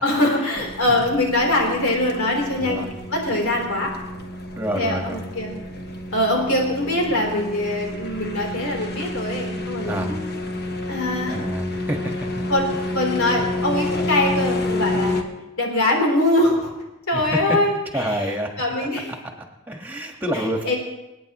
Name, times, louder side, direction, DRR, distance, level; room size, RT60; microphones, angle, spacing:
voice 1, 0.0-2.8 3.1-3.9 4.7-5.6 6.1-10.2 10.9-11.4 12.5-12.7 12.9-15.2 15.6-16.7 17.1-19.1 20.3-20.8, left 1 dB, 85° left, 0 dB, 3.8 m, -23 dB
sound 1, 0.6-15.2, left 2 dB, 50° left, 1.3 m, -29 dB
voice 2, 2.5-3.0 4.5-5.3 9.9-10.1 11.3-12.3 17.1-17.6 17.9-18.5 19.7-20.7, equal, 10° right, 2 dB, 1.6 m, -27 dB
27.5 x 9.3 x 3.1 m, 0.97 s
head